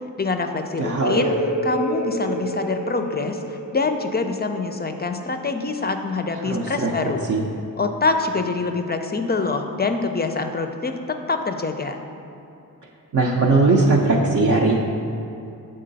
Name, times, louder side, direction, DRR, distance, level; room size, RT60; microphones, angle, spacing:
voice 1, 0.2-1.3 1.6-7.2 7.8-12.0, left 3 dB, 30° left, 6 dB, 0.4 m, -25 dB
voice 2, 0.8-1.3 6.5-7.4 13.1-14.7, right 3 dB, 55° right, -2 dB, 0.6 m, -19 dB
sound 1, 1.0-6.4, right 1 dB, 90° right, 1.0 m, -29 dB
6.5 x 3.7 x 4.0 m, 2.8 s
cardioid pair, 55°, 36 cm